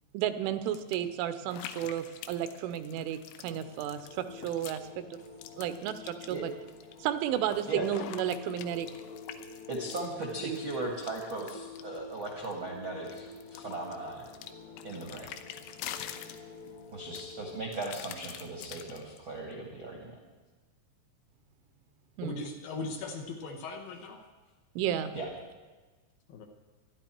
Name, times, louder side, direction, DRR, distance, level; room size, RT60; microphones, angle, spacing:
voice 1, 0.1-3.2 3.4-4.8 5.6-6.5 7.0-8.9 10.4-10.6 22.2-22.3 24.8-25.1, right 10 dB, 80° right, 11 dB, 3.2 m, -32 dB
sound 1, 0.7-1.0 1.5-4.9 5.1-7.0 7.3-12.6 13.0-16.8 17.2-19.2, left 11 dB, 85° left, 3.1 m, -46 dB
sound 2, 3.6-17.7, left 4 dB, 50° left, 1.7 m, -48 dB
voice 2, 9.7-14.3 14.8-15.3 16.9-20.1 25.1-25.3, right 2 dB, 60° right, -1 dB, 1.3 m, -38 dB
voice 3, 22.2-24.2 26.3-26.5, left 3 dB, 70° left, 4 dB, 2.3 m, -39 dB
24.5 x 11.0 x 4.5 m, 1.3 s
omnidirectional pair, 5.5 m